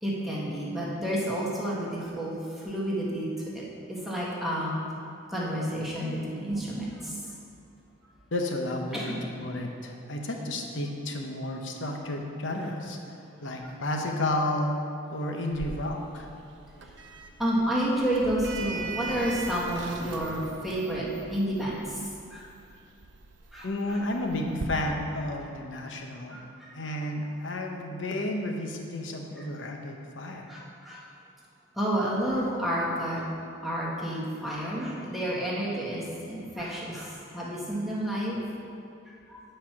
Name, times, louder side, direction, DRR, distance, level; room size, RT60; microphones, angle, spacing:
voice 1, 0.0-3.3 3.5-3.6 3.9-4.8 5.3-7.2 8.9-9.3 17.4-22.0 22.3-22.4 23.5-24.0 24.4-24.6 26.3-26.7 30.5-31.0 31.7-33.3 33.6-38.4 39.3-39.4, right 1 dB, ahead, -7 dB, 1.4 m, -30 dB
voice 2, 8.3-13.0 13.4-14.7 15.1-16.3 23.6-26.4 26.7-30.5, left 1 dB, 70° left, 2 dB, 0.9 m, -32 dB
Sliding door, 15.5-24.6, right 3 dB, 65° right, 0.6 m, -41 dB
9.9 x 4.5 x 5.9 m, 2.5 s
head